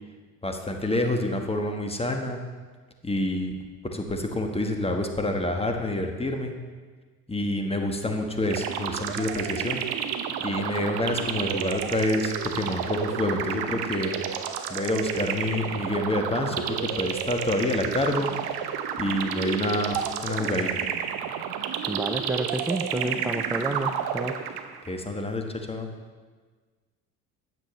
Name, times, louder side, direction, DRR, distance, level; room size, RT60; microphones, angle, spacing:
voice 1, 0.4-2.4 3.0-3.5 3.8-6.5 7.3-9.8 10.4-14.2 14.7-18.3 19.0-20.9 24.9-25.9, left 1 dB, 10° left, 4 dB, 1.4 m, -28 dB
sound 1, 8.5-24.9, right 8 dB, 55° right, 0.9 m, -31 dB
voice 2, 21.9-24.3, right 2 dB, 5° right, 5 dB, 0.4 m, -29 dB
12.5 x 8.8 x 3.2 m, 1.4 s
figure-of-eight pair, 55°, 47 cm